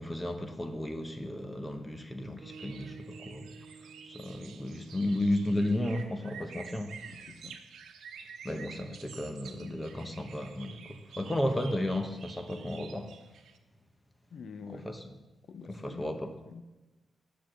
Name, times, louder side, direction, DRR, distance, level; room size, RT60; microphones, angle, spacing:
voice 1, 0.0-3.5 4.1-7.0 8.4-13.2 14.8-15.0 15.7-16.3, left 1 dB, 15° left, 0.9 m, -33 dB
sound 1, 2.4-6.7, right 5 dB, 55° right, 1.5 m, -53 dB
sound 2, 2.5-13.6, right 6 dB, 85° right, 0.9 m, -50 dB
voice 2, 7.1-7.6 14.3-14.9 15.5-16.6, left 5 dB, 60° left, 0.6 m, -47 dB
10.0 x 6.9 x 7.7 m
cardioid pair, 120°, 0 cm